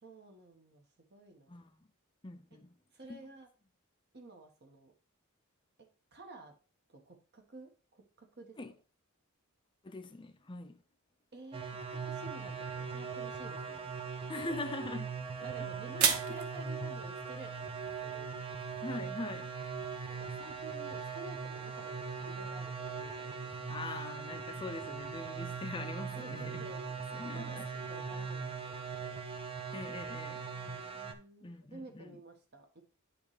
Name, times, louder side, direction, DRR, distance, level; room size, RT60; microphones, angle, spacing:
voice 1, 0.0-1.6 2.9-3.5 4.1-4.9 6.1-6.5 6.9-8.6 11.3-13.9 14.4-14.7 15.4-18.4 20.1-23.7 26.1-29.2 30.5-32.8, right 2 dB, 50° right, 1.4 m, -52 dB
voice 2, 1.5-1.9 2.2-2.8 3.1-3.2 8.6-8.7 9.8-10.8 14.3-15.1 15.4-15.5 16.0-16.4 18.8-19.5 23.7-26.7 27.1-27.7 29.7-30.4 31.4-32.2, left 2 dB, 25° left, 0.6 m, -42 dB
sound 1, 11.5-31.1, right 5 dB, 25° right, 0.6 m, -40 dB
sound 2, 14.4-20.3, right 7 dB, 75° right, 0.8 m, -38 dB
8.4 x 3.2 x 4.9 m
head